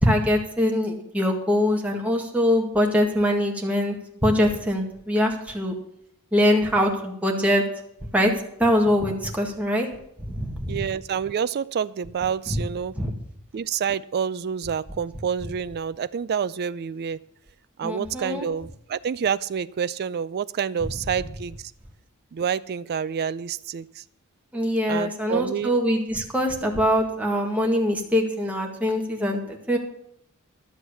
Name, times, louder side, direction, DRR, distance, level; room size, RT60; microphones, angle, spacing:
voice 1, 0.0-4.0 4.2-5.7 6.3-7.6 8.1-8.3 8.6-9.9 10.3-10.8 12.5-12.6 13.0-13.1 17.8-18.5 24.5-29.4 29.7-29.8, equal, 5° right, 0 dB, 1.9 m, -23 dB
voice 2, 10.7-12.9 13.5-17.2 17.8-21.6 22.3-24.0 24.9-25.8, right 7 dB, 45° right, 14 dB, 0.4 m, -28 dB
12.0 x 8.2 x 6.8 m, 0.72 s
head